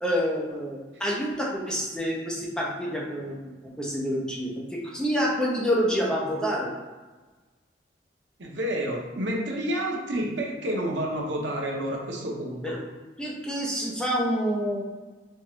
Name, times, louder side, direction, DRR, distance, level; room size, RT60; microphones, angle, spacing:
voice 1, 0.0-3.4 3.8-6.7 12.6-12.8 13.2-14.8, equal, 5° left, -4 dB, 0.6 m, -27 dB
voice 2, 8.4-12.8, right 1 dB, 85° right, -1 dB, 0.8 m, -29 dB
4.5 x 2.4 x 3.0 m, 1.3 s
head